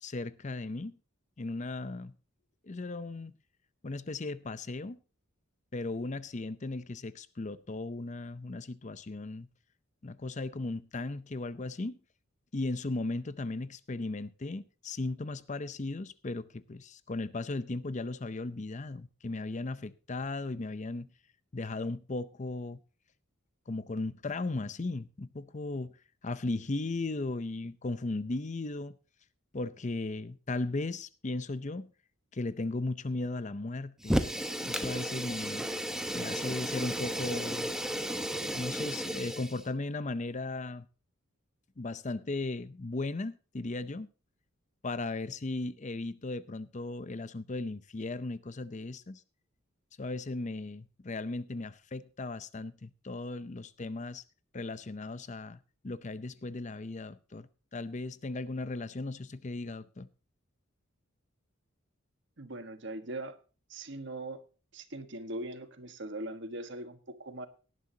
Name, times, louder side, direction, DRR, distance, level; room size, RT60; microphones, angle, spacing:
voice 1, 0.0-0.9 1.4-2.1 2.6-3.3 3.8-5.0 5.7-9.5 10.0-12.0 12.5-21.1 21.5-22.8 23.7-25.9 26.2-29.0 29.5-31.9 32.3-34.2 34.6-35.7 36.1-37.7 38.6-40.9 41.8-44.1 44.8-49.2 50.0-54.2 54.5-60.1, left 2 dB, 35° left, 0.6 m, -36 dB
Fire, 34.0-39.6, equal, 5° right, 1.0 m, -33 dB
voice 2, 62.4-63.4 63.7-64.4 64.7-67.5, right 1 dB, 60° right, 1.4 m, -40 dB
18.0 x 11.0 x 2.8 m
head